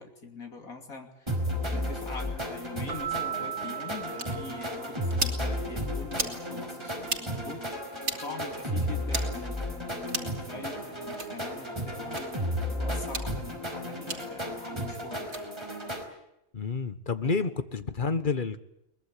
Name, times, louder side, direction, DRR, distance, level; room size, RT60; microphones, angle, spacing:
voice 1, 0.0-1.4 1.7-7.6 8.2-15.3, left 4 dB, 85° left, 3 dB, 3.3 m, -43 dB
sound 1, 1.3-16.0, equal, 20° right, 5.0 m, -33 dB
Keyboard (musical), 2.9-5.3, right 10 dB, 45° right, 1.6 m, -37 dB
sound 2, 4.2-4.3 5.1-5.4 6.1-6.4 7.0-7.2 8.0-8.2 9.1-9.3 10.1-10.4 11.1-11.3 12.1-12.2 13.0-13.3 14.1-14.2 15.2-15.4, right 3 dB, 80° right, 3.3 m, -33 dB
voice 2, 16.5-18.6, left 4 dB, 40° left, 11 dB, 1.4 m, -29 dB
23.0 x 20.5 x 8.5 m, 0.84 s
omnidirectional pair, 1.4 m